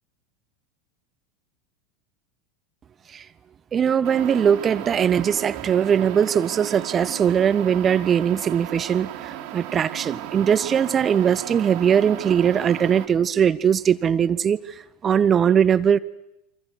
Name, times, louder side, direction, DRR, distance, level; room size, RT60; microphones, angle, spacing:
voice 1, 3.7-14.7 15.0-16.0, right 8 dB, 30° right, 18 dB, 0.9 m, -20 dB
sound 1, 4.0-13.1, right 12 dB, 55° right, 2.3 m, -35 dB
29.5 x 24.0 x 6.3 m, 0.82 s
figure-of-eight pair, 80°, 0 cm